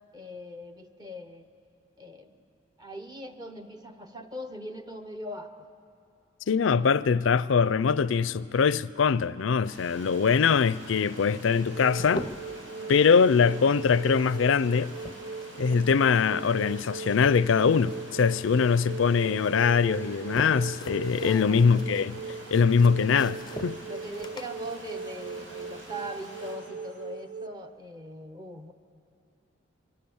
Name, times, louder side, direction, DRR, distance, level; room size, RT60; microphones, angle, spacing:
voice 1, 0.1-1.5 2.0-2.4 2.8-5.7 6.8-6.9 12.7-13.1 21.2-21.7 23.9-28.7, equal, 20° right, 0.9 m, -41 dB
voice 2, 6.5-12.3 12.9-14.9 15.6-22.2 22.5-23.8, left 5 dB, 75° left, 0.4 m, -23 dB
Stream, 9.6-26.5, right 1 dB, 80° right, 6.3 m, -47 dB
sound 1, 11.4-12.7 13.8-16.1 16.4-18.2 18.5-19.4 19.9-26.0, left 1 dB, 20° left, 0.5 m, -44 dB
sound 2, 11.6-27.5, right 5 dB, 65° right, 1.0 m, -40 dB
25.5 x 21.5 x 7.1 m
head